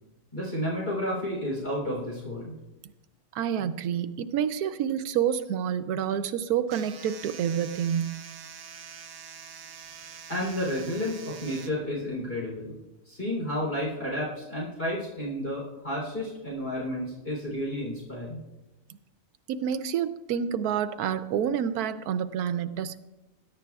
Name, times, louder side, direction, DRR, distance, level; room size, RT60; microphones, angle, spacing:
voice 1, 0.3-2.5 9.8-10.0 10.3-12.8 13.0-18.4, left 1 dB, 40° left, -5 dB, 3.7 m, -31 dB
voice 2, 3.3-8.2 19.5-23.0, right 9 dB, 85° right, 10 dB, 1.2 m, -28 dB
sound 1, 6.7-11.7, right 7 dB, 55° right, 0.7 m, -45 dB
20.5 x 11.0 x 2.3 m, 1.0 s
omnidirectional pair, 1.6 m